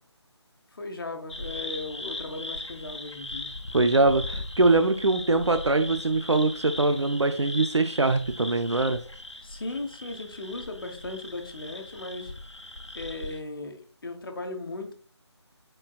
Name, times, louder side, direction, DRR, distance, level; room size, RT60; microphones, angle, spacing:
voice 1, 0.7-3.5 9.4-12.3 12.9-14.9, left 2 dB, 50° left, 4 dB, 1.3 m, -37 dB
sound 1, 1.3-13.4, left 2 dB, 80° left, 1.1 m, -39 dB
voice 2, 3.7-9.0, right 2 dB, 70° right, 8 dB, 0.6 m, -23 dB
9.9 x 4.5 x 2.4 m, 0.39 s
figure-of-eight pair, 155°, 15 cm